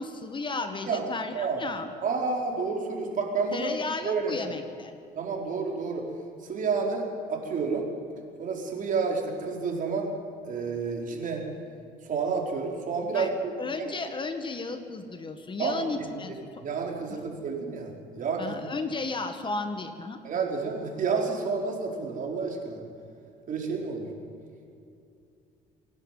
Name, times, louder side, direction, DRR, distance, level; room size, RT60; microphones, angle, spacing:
voice 1, 0.0-1.9 3.5-4.9 13.1-13.3 13.6-16.3 17.1-17.2 18.4-20.2, left 3 dB, 30° left, 7 dB, 1.8 m, -34 dB
voice 2, 2.0-3.7 4.0-4.4 5.1-6.1 6.5-7.9 8.4-10.1 10.4-11.5 12.0-13.3 13.8-13.9 15.6-15.8 16.6-18.5 20.2-22.8 23.5-24.1, right 5 dB, 50° right, 1 dB, 4.4 m, -30 dB
26.5 x 11.0 x 9.2 m, 2.6 s
cardioid pair, 110°, 17 cm